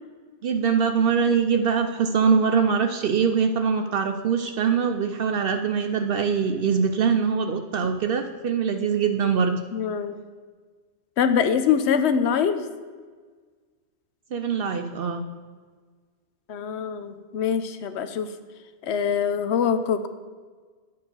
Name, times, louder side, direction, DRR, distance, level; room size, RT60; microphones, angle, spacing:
voice 1, 0.4-9.6 14.3-15.2, right 6 dB, 60° right, 6 dB, 0.7 m, -23 dB
voice 2, 9.7-10.1 11.2-12.6 16.5-18.3 18.8-20.1, left 7 dB, 75° left, 10 dB, 0.9 m, -24 dB
9.4 x 4.7 x 6.9 m, 1.5 s
omnidirectional pair, 1.2 m